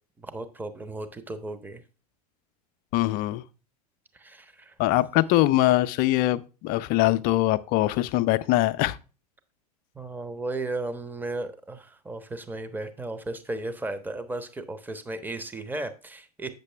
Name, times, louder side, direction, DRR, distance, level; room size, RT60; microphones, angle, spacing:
voice 1, 0.2-1.8 4.1-4.7 9.9-16.5, right 2 dB, 10° right, 0.9 m, -35 dB
voice 2, 2.9-3.4 4.8-9.0, left 16 dB, 45° left, 0.5 m, -22 dB
8.2 x 6.7 x 3.3 m
hypercardioid pair, 90°, 20 cm